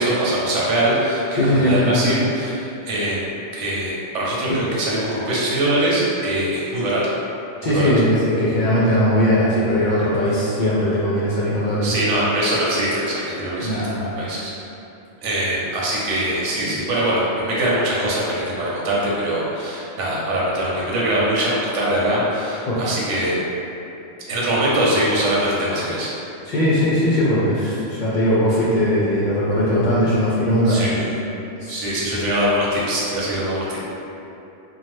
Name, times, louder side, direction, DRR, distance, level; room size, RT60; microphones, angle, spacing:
voice 1, 0.0-3.3 3.5-7.1 7.6-7.9 11.8-13.8 14.2-14.5 15.2-23.4 24.3-26.1 30.7-31.2 31.7-33.8, right 1 dB, 80° right, -6 dB, 1.0 m, -22 dB
voice 2, 1.3-2.1 4.5-4.6 7.6-11.9 13.6-14.1 16.6-16.7 22.7-22.8 26.5-31.1 31.6-31.8, equal, 60° left, -8 dB, 0.5 m, -19 dB
2.8 x 2.2 x 3.3 m, 2.9 s
omnidirectional pair, 1.2 m